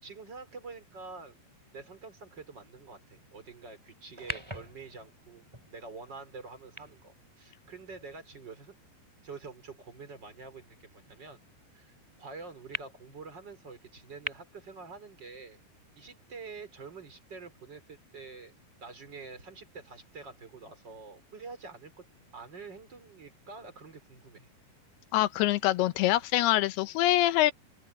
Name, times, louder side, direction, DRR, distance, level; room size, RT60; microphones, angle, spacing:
voice 1, 0.0-1.4 1.7-8.7 9.2-11.4 11.7-15.6 16.0-18.5 18.8-22.1 22.3-24.5, right 4 dB, 25° right, 4.2 m, -47 dB
sound 1, 4.2-8.6 9.3-9.4 12.7-12.8 14.2-14.3, equal, 5° right, 3.8 m, -42 dB
voice 2, 25.1-27.5, left 15 dB, 80° left, 2.4 m, -25 dB
open air
omnidirectional pair, 5.3 m